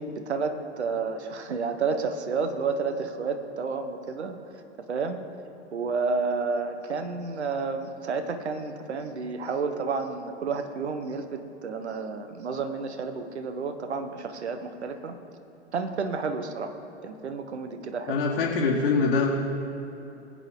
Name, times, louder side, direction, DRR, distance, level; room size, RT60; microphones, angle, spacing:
voice 1, 0.0-4.4 4.9-5.2 5.7-15.2 15.7-16.7 17.0-18.2, right 4 dB, 70° right, 8 dB, 1.2 m, -30 dB
voice 2, 18.1-19.3, left 4 dB, 55° left, -4 dB, 1.5 m, -23 dB
20.0 x 8.5 x 3.8 m, 3.0 s
figure-of-eight pair, 105°, 35 cm